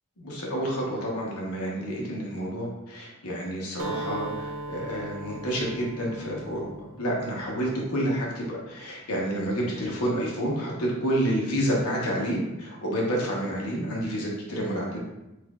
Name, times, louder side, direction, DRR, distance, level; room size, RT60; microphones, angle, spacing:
voice 1, 0.2-6.7 6.9-15.0, equal, 90° left, -3 dB, 1.0 m, -29 dB
Acoustic guitar, 3.8-7.7, right 2 dB, 75° right, 0.4 m, -38 dB
5.8 x 2.5 x 2.3 m, 0.97 s
head